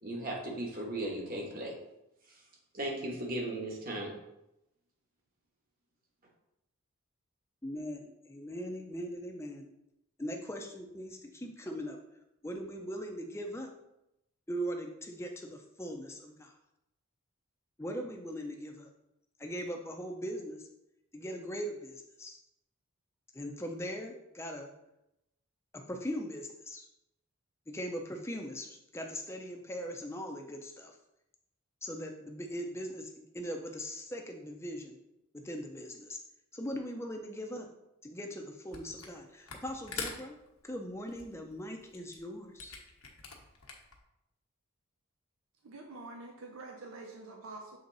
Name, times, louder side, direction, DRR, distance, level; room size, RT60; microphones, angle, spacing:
voice 1, 0.0-1.7 2.7-4.1, right 1 dB, 40° right, -1 dB, 1.4 m, -36 dB
voice 2, 7.6-9.7 10.2-12.0 12.4-13.7 14.5-16.5 17.8-18.9 19.4-20.7 21.1-22.4 23.3-24.7 25.7-26.9 27.7-31.0 31.8-35.0 35.3-36.2 36.5-37.7 38.0-40.4 40.7-42.8, equal, 10° left, 3 dB, 0.6 m, -40 dB
Camera, 38.7-39.2 39.4-44.0, left 5 dB, 85° left, 1.2 m, -44 dB
voice 3, 45.6-47.8, right 3 dB, 75° right, 1 dB, 0.7 m, -46 dB
7.0 x 3.8 x 4.0 m, 0.87 s
head